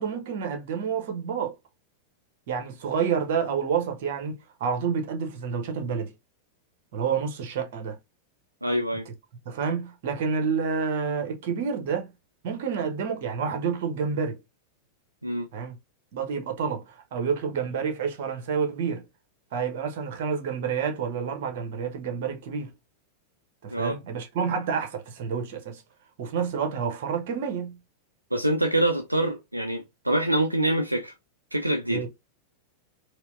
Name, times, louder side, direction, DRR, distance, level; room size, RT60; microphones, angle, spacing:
voice 1, 0.0-1.5 2.5-6.1 6.9-8.0 9.4-12.1 12.4-14.4 15.5-15.7 16.1-19.0 19.5-22.7 23.6-25.8 26.2-27.8 31.9-32.1, right 6 dB, 50° right, 0.9 m, -29 dB
voice 2, 8.6-9.1 15.2-15.5 23.7-24.0 28.3-31.1 31.5-32.0, right 1 dB, 85° right, 0.4 m, -25 dB
4.3 x 2.1 x 2.5 m
figure-of-eight pair, 90°, 0 cm